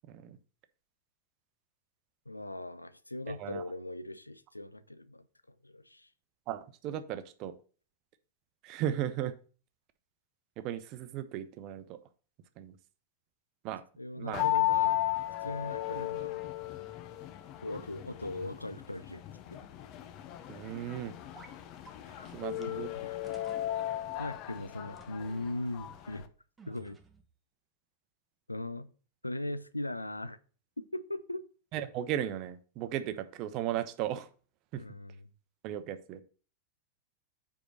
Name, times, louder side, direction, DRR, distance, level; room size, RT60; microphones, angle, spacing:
voice 1, 0.1-0.4 3.3-3.6 6.5-7.5 8.6-9.3 10.6-12.0 12.6-12.8 13.6-13.8 14.2-14.5 20.5-21.1 22.3-22.9 31.7-34.3 34.7-34.8 35.6-36.2, right 11 dB, 40° right, 0.7 m, -36 dB
voice 2, 2.3-5.2 5.6-6.1 14.0-15.1 15.4-16.5 17.6-19.2 19.5-19.6 22.2-22.3 22.7-23.2 24.2-26.3 26.7-27.0 28.5-28.9 29.2-30.4 30.9-31.4 34.7-35.3, left 1 dB, 85° left, 0.4 m, -39 dB
sound 1, 14.3-26.2, left 14 dB, 40° left, 0.6 m, -35 dB
sound 2, 21.3-21.6 21.8-21.9 22.6-22.7 23.2-23.7 25.0-25.4 26.6-27.3, right 3 dB, 15° right, 1.0 m, -55 dB
5.0 x 4.8 x 5.9 m
figure-of-eight pair, 90°, 0 cm